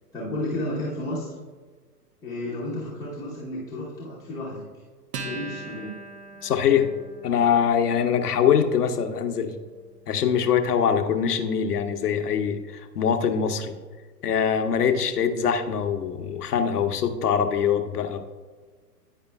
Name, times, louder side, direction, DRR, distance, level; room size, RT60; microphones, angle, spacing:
voice 1, 0.1-1.3 2.2-4.7 5.2-5.9, left 1 dB, 5° left, -9 dB, 0.8 m, -32 dB
Acoustic guitar, 5.1-12.0, right 3 dB, 45° right, 0.7 m, -43 dB
voice 2, 6.4-6.9 7.2-9.5 10.1-13.7 14.2-18.2, left 7 dB, 70° left, 6 dB, 0.9 m, -23 dB
9.8 x 5.1 x 2.2 m, 1.4 s
hypercardioid pair, 120°, 49 cm